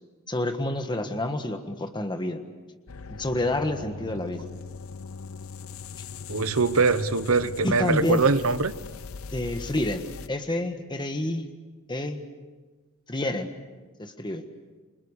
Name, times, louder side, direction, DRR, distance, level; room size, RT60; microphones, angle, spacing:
voice 1, 0.3-2.4 3.1-4.4 7.6-8.2 9.3-11.5 11.9-12.2 13.1-13.5 14.0-14.4, left 1 dB, 20° left, 7 dB, 1.6 m, -28 dB
sound 1, 2.9-10.3, left 5 dB, 80° left, 0.7 m, -40 dB
voice 2, 6.3-8.7, right 4 dB, 80° right, 14 dB, 1.0 m, -23 dB
28.5 x 25.0 x 6.7 m, 1.3 s
head